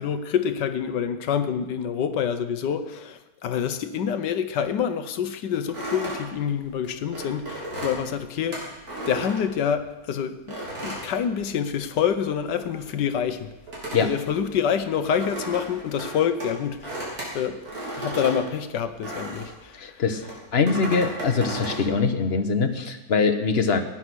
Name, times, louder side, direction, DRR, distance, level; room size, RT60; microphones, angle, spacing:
voice 1, 0.0-8.6 9.1-10.6 10.8-13.5 14.0-17.7 17.9-20.0, left 8 dB, 70° left, 10 dB, 1.4 m, -27 dB
sound 1, 5.7-10.0 10.5-12.0 12.2-19.6 20.2-21.9, right 1 dB, 55° right, 4.4 m, -35 dB
voice 2, 19.8-20.2 20.5-23.8, left 4 dB, 40° left, 7 dB, 1.1 m, -23 dB
15.5 x 9.9 x 6.2 m, 1.0 s
omnidirectional pair, 2.0 m